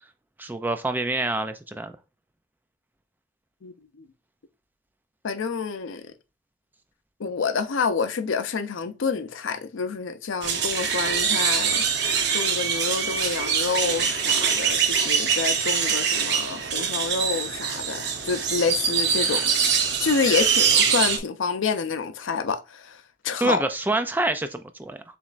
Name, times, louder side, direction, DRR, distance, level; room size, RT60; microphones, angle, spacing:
voice 1, 0.4-1.9 23.4-25.0, right 2 dB, 10° right, 0.3 m, -26 dB
voice 2, 3.6-4.1 5.2-6.1 7.2-11.8 12.3-19.7 20.0-23.6, left 5 dB, 90° left, 0.5 m, -28 dB
sound 1, 10.4-21.2, right 6 dB, 60° right, 0.8 m, -24 dB
6.9 x 3.1 x 2.5 m
head